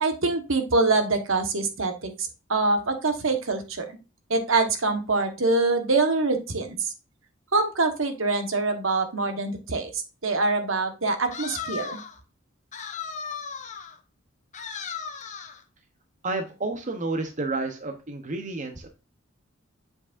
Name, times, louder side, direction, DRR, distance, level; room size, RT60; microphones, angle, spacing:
voice 1, 0.0-3.9 4.3-6.9 7.5-9.9 10.2-12.0, right 3 dB, 70° right, 7 dB, 1.3 m, -24 dB
sound 1, 11.3-12.2 12.7-14.0 14.5-15.6, left 6 dB, 35° left, 1.0 m, -36 dB
voice 2, 16.2-18.9, right 3 dB, 40° right, 5 dB, 0.9 m, -30 dB
7.4 x 6.0 x 2.5 m, 0.30 s
head